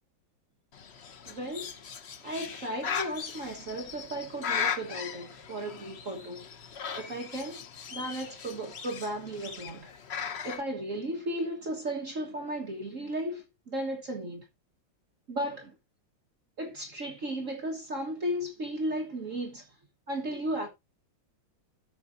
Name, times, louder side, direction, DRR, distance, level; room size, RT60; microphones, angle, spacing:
Bird, 0.7-10.6, left 7 dB, 55° left, 0.7 m, -38 dB
voice 1, 1.2-1.7 2.2-6.5 7.0-7.7 7.9-9.9 10.4-14.4 15.3-15.7 16.6-19.7 20.1-20.7, right 1 dB, 45° right, 1.6 m, -35 dB
13.5 x 6.3 x 2.6 m
omnidirectional pair, 2.1 m